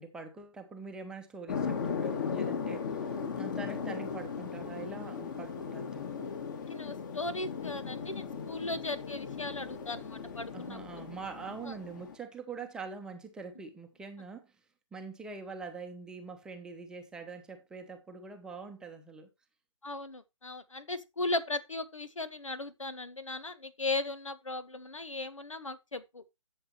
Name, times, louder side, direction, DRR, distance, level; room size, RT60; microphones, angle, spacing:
voice 1, 0.0-3.0 3.4-6.2 10.5-14.5 14.9-19.3, right 4 dB, 5° right, 0.9 m, -44 dB
sound 1, 1.5-12.2, left 6 dB, 40° left, 2.2 m, -37 dB
voice 2, 6.7-10.8 11.6-11.7 19.8-26.2, left 2 dB, 80° left, 1.5 m, -37 dB
12.0 x 7.1 x 3.1 m
figure-of-eight pair, 145°, 16 cm